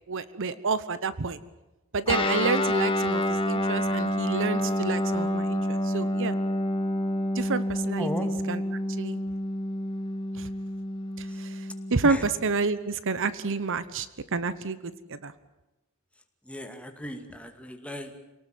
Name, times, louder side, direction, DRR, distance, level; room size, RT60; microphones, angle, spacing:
voice 1, 0.1-1.4 1.9-6.3 7.3-8.1 8.5-8.6 9.0-9.2 10.3-10.5 11.2-12.2 12.4-15.3, right 4 dB, 60° right, 15 dB, 1.0 m, -29 dB
Guitar, 2.1-12.0, left 1 dB, 25° left, 2.3 m, -28 dB
voice 2, 8.0-8.3 11.3-11.4 12.0-12.3 16.4-18.2, left 1 dB, 5° left, 5 dB, 2.4 m, -36 dB
28.0 x 18.5 x 9.2 m, 1.0 s
head